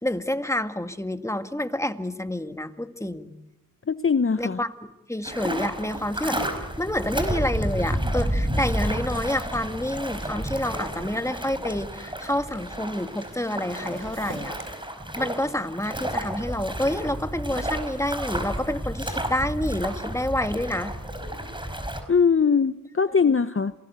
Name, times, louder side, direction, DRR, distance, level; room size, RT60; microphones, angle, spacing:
voice 1, 0.0-3.3 4.4-6.4 6.8-14.7 15.1-20.9 23.2-23.3, left 1 dB, 10° left, 9 dB, 1.8 m, -28 dB
voice 2, 3.9-4.6 22.1-23.7, left 5 dB, 40° left, 12 dB, 0.8 m, -21 dB
sound 1, 5.2-22.0, right 1 dB, 15° right, 4.9 m, -31 dB
sound 2, 7.2-11.7 12.3-14.6, right 2 dB, 35° right, 5.0 m, -45 dB
27.5 x 19.5 x 8.2 m, 0.93 s
cardioid pair, 50°, 35 cm